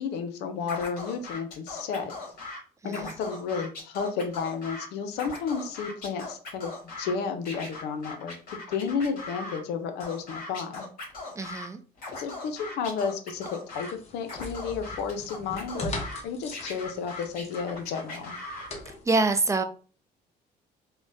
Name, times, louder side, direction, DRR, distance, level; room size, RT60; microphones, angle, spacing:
voice 1, 0.0-2.1 2.8-10.9 12.1-15.9 16.2-18.3, left 5 dB, 85° left, 0.6 m, -32 dB
Scratching (performance technique), 0.7-2.6 2.9-4.9 5.1-7.1 7.5-9.6 10.0-11.7 12.0-13.9 14.3-16.2 16.5-18.7, left 3 dB, 60° left, 1.6 m, -39 dB
voice 2, 2.8-3.1 11.4-11.8 19.1-19.6, right 3 dB, 20° right, 0.3 m, -25 dB
sound 1, 13.7-19.0, left 2 dB, 40° left, 0.9 m, -41 dB
3.7 x 2.1 x 2.6 m
cardioid pair, 110°, 17 cm